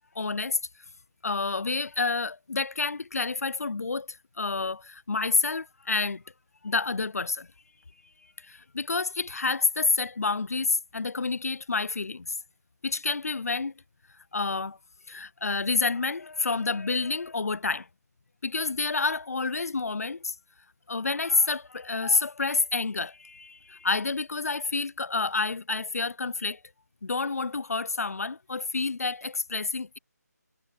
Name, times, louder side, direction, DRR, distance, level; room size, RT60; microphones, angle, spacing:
voice 1, 0.2-0.6 1.2-4.1 4.4-6.2 6.6-7.5 8.4-12.3 12.8-13.7 14.3-14.8 15.1-17.9 18.4-20.3 20.9-26.6 27.0-30.0, left 4 dB, 60° left, 0.6 m, -28 dB
figure-of-eight pair, 175°, 9 cm